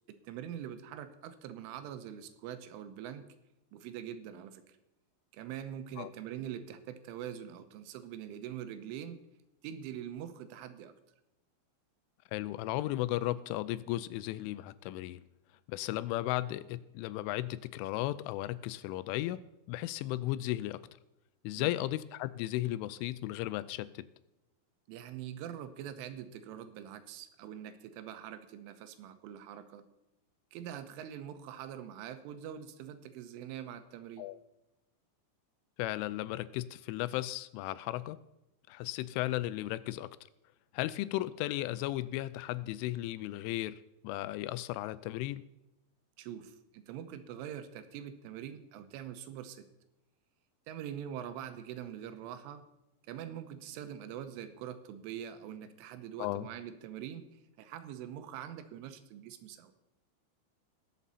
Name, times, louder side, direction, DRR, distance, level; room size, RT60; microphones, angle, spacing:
voice 1, 0.1-3.3 3.7-4.8 5.3-9.2 9.6-10.9 21.6-21.7 24.9-29.9 30.5-34.3 46.2-49.7 50.7-52.7 53.1-57.3 57.6-59.7, right 10 dB, 85° right, 10 dB, 3.4 m, -44 dB
voice 2, 12.3-15.2 15.7-19.4 19.7-20.8 21.4-24.1 34.2-34.4 35.8-38.2 38.7-40.1 40.7-45.4 56.2-56.5, left 16 dB, 85° left, 16 dB, 3.0 m, -35 dB
20.5 x 7.4 x 4.1 m, 0.95 s
omnidirectional pair, 5.6 m